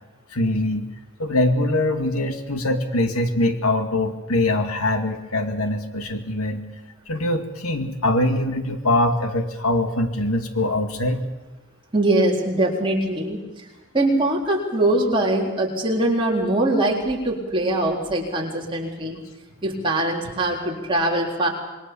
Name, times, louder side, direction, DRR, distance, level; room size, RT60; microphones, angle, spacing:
voice 1, 0.3-0.9 1.2-6.6 7.1-11.2, left 1 dB, 90° left, 6 dB, 2.4 m, -23 dB
voice 2, 11.9-13.4 13.9-19.2 19.6-21.5, right 1 dB, 25° right, -2 dB, 4.1 m, -22 dB
26.0 x 22.0 x 7.2 m, 1.1 s
head